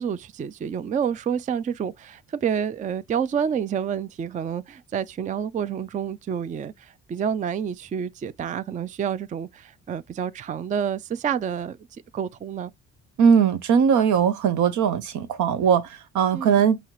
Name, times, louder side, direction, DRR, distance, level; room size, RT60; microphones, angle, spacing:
voice 1, 0.0-11.8 12.1-12.7 16.3-16.6, right 8 dB, 25° right, 0.3 m, -28 dB
voice 2, 13.2-16.8, right 7 dB, 75° right, 0.8 m, -20 dB
5.5 x 2.8 x 2.9 m
cardioid pair, 90°, 30 cm